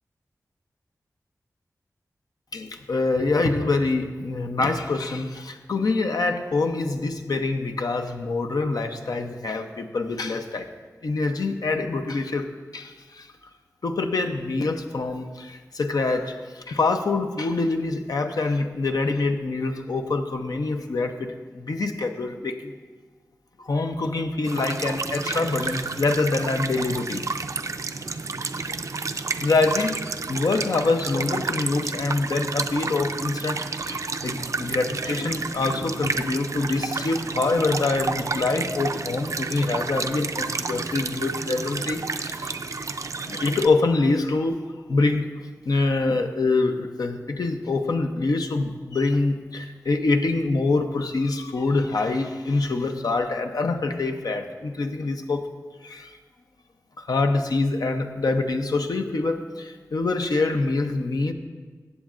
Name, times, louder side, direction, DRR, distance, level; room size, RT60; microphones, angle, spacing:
voice 1, 2.5-10.7 11.0-13.3 13.8-21.3 21.5-22.7 23.6-27.3 28.6-28.7 29.4-42.6 43.2-44.6 44.9-45.3 45.7-55.5 55.8-56.2 57.0-61.3, left 3 dB, 80° left, 5 dB, 0.7 m, -25 dB
sound 1, 24.4-43.7, right 4 dB, 55° right, 0.4 m, -30 dB
15.0 x 7.4 x 2.5 m, 1.4 s
cardioid pair, 45°, 6 cm